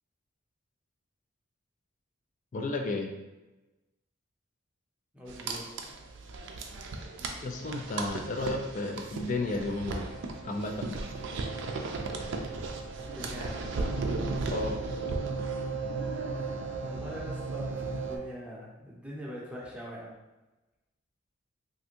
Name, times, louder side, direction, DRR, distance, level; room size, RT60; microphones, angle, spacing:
voice 1, 2.5-3.1 7.4-10.1 10.4-11.0 14.5-15.0, left 2 dB, 40° left, 3 dB, 0.3 m, -33 dB
voice 2, 5.1-5.9 13.0-13.9 16.3-20.1, equal, 5° right, -5 dB, 0.6 m, -43 dB
sound 1, 5.3-18.2, right 3 dB, 65° right, 0.4 m, -35 dB
3.4 x 2.5 x 2.8 m, 1.1 s
head